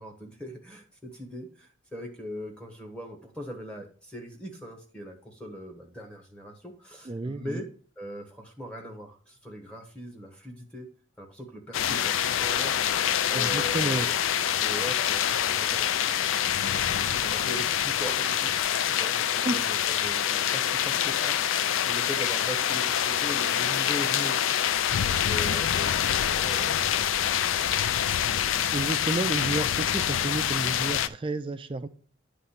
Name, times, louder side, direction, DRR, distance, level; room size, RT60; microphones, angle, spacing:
voice 1, 0.0-7.7 8.0-10.9 11.2-12.8 13.3-14.1 14.6-24.6 25.0-27.4, equal, 5° left, 2 dB, 1.3 m, -40 dB
voice 2, 7.0-7.6 13.3-14.1 19.4-19.6 28.7-31.9, right 2 dB, 25° right, 10 dB, 0.3 m, -31 dB
sound 1, 11.7-31.1, left 9 dB, 75° left, 0.4 m, -26 dB
9.4 x 3.3 x 5.6 m, 0.43 s
head